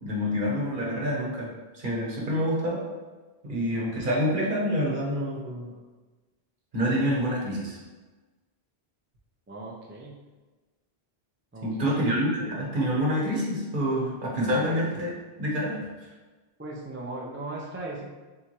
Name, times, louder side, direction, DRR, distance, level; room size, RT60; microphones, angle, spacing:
voice 1, 0.0-2.8 3.4-5.7 6.7-7.8 11.6-15.1 15.4-15.9, equal, 50° right, -3 dB, 1.1 m, -27 dB
voice 2, 9.5-10.2 11.5-12.0 14.6-14.8 16.6-18.1, right 2 dB, 20° right, -3 dB, 0.4 m, -38 dB
4.2 x 3.6 x 3.0 m, 1.3 s
omnidirectional pair, 1.1 m